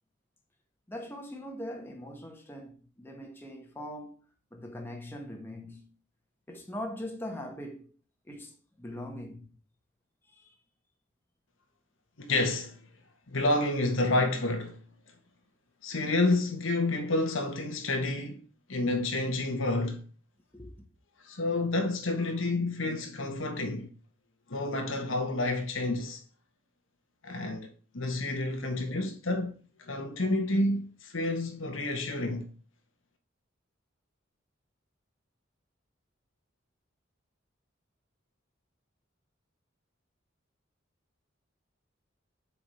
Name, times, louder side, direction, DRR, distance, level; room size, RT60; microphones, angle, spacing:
voice 1, 0.9-4.2 4.5-5.8 6.5-7.9 8.3-9.5 10.3-10.5 20.5-20.8, left 1 dB, 10° left, 1.5 m, -41 dB
voice 2, 12.2-12.8 13.3-14.8 15.8-18.4 18.7-20.0 21.3-23.9 24.5-26.2 27.2-27.7 27.9-29.5 29.8-32.5, left 2 dB, 80° left, 1.4 m, -29 dB
7.2 x 5.0 x 4.9 m
head